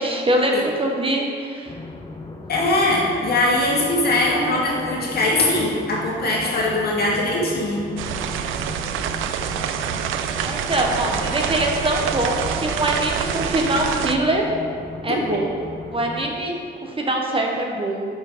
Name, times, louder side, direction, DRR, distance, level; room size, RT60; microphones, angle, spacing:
voice 1, 0.0-1.7 10.4-14.5 15.0-15.5 15.9-18.1, right 1 dB, 25° right, 1 dB, 1.0 m, -23 dB
sound 1, 1.7-16.3, left 2 dB, 20° left, 0.7 m, -37 dB
voice 2, 2.5-7.9 15.3-15.4, left 1 dB, 55° left, -3 dB, 1.9 m, -21 dB
sound 2, 8.0-14.2, right 9 dB, 85° right, 0.4 m, -26 dB
5.9 x 5.8 x 5.0 m, 2.3 s
cardioid pair, 90°, 20 cm